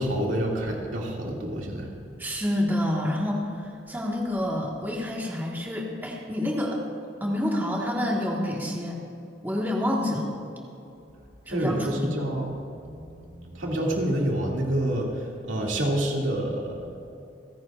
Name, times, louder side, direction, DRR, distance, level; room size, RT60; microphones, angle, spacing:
voice 1, 0.0-1.9 11.5-12.5 12.8-17.0, right 1 dB, 90° right, -2 dB, 2.4 m, -28 dB
voice 2, 2.2-6.8 7.2-9.0 9.4-10.3 11.5-12.3, left 1 dB, 10° right, -2 dB, 1.5 m, -28 dB
28.0 x 10.5 x 2.5 m, 2.6 s
head